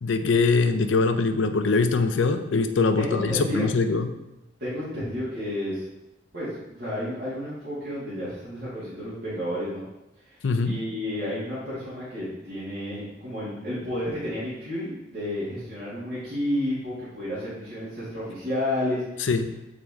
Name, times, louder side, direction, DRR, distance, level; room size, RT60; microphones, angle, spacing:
voice 1, 0.0-4.1 10.4-10.7 19.3-19.5, left 4 dB, 85° left, 8 dB, 0.5 m, -22 dB
voice 2, 3.0-3.7 4.6-5.8 6.3-9.8 10.3-19.0, left 1 dB, 55° right, -12 dB, 2.2 m, -31 dB
8.5 x 3.2 x 3.6 m, 0.94 s
head